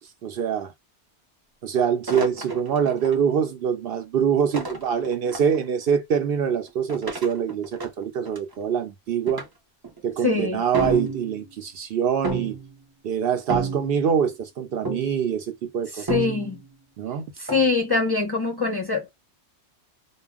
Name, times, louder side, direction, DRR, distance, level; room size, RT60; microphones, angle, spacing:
voice 1, 0.2-0.7 1.6-9.4 10.0-12.6 13.0-16.1 17.0-17.3, right 7 dB, 65° right, 0.7 m, -24 dB
sound 1, 2.1-3.2 4.5-5.6 6.9-8.5 9.3-9.4 9.8-10.1 10.7-11.5 12.2-12.8 13.5-14.2 14.8-15.3 16.1-16.7 17.5-17.7, right 3 dB, 30° right, 0.5 m, -30 dB
voice 2, 10.2-10.6 15.9-16.6 17.4-19.1, left 4 dB, 30° left, 0.5 m, -24 dB
2.1 x 2.1 x 3.4 m
omnidirectional pair, 1.2 m